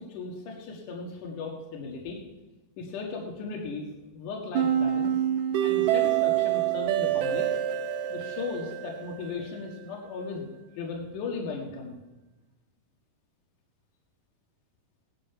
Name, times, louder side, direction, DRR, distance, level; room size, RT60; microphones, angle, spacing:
voice 1, 0.0-2.2 2.8-3.9 4.1-5.1 5.6-7.5 8.1-10.5 10.7-12.0, left 4 dB, 75° left, 0 dB, 3.3 m, -36 dB
sound 1, 4.5-9.6, right 11 dB, 70° right, 2.4 m, -26 dB
17.5 x 11.5 x 5.8 m, 1.1 s
omnidirectional pair, 3.8 m